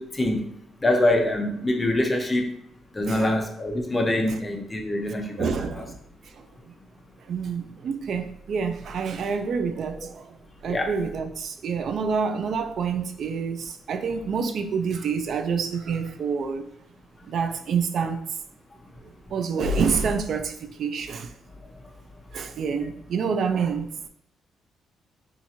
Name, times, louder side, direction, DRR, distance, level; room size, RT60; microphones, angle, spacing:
voice 1, 0.0-2.5 2.9-5.7 10.7-10.9, left 1 dB, 20° left, 0.6 m, -25 dB
voice 2, 5.4-6.0 6.3-6.7 7.3-10.4 10.6-16.7 17.3-18.2 19.3-21.3 22.3-23.9, right 5 dB, 60° right, 0.4 m, -27 dB
4.4 x 2.5 x 2.8 m
cardioid pair, 90°, 0 cm